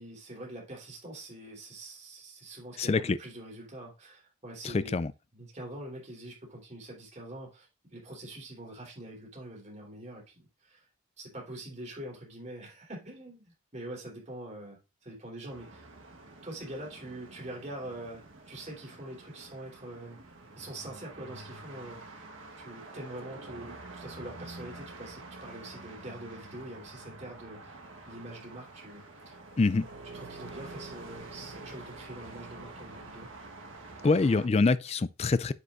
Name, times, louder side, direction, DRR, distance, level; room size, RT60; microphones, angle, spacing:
voice 1, 0.0-4.9 5.3-10.9 11.2-15.9 16.4-20.2 20.6-22.3 22.6-27.8 28.1-29.4 30.1-33.3, right 1 dB, 30° right, 3.6 m, -44 dB
voice 2, 2.8-3.2 4.6-5.1 29.6-29.9 34.0-35.5, left 3 dB, 30° left, 0.3 m, -25 dB
sound 1, 15.5-34.5, right 2 dB, 70° right, 1.4 m, -47 dB
9.7 x 5.4 x 2.5 m
head